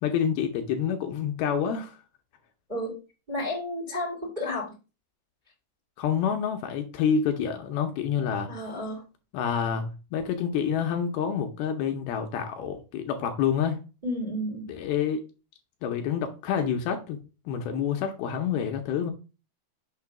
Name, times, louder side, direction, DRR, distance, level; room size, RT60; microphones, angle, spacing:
voice 1, 0.0-2.0 6.0-8.5 9.3-13.8 14.7-15.2 15.8-17.2 17.5-19.1, left 7 dB, 80° left, 2.4 m, -28 dB
voice 2, 3.3-4.7 8.5-9.0 14.0-14.6, left 1 dB, 20° right, 1.4 m, -31 dB
6.7 x 2.9 x 5.8 m
omnidirectional pair, 4.7 m